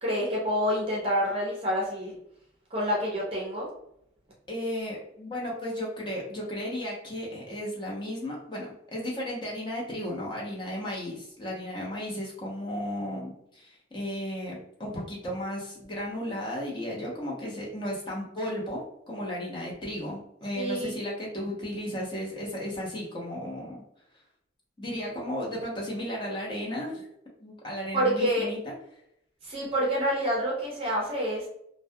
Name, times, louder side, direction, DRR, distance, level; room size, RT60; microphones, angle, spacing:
voice 1, 0.0-2.1 2.7-3.7 20.6-21.0 27.9-28.5 29.4-31.4, equal, 30° right, -4 dB, 0.5 m, -27 dB
voice 2, 4.5-23.8 24.8-27.1 27.4-28.7, equal, 25° left, -3 dB, 0.7 m, -34 dB
2.3 x 2.1 x 2.7 m, 0.77 s
head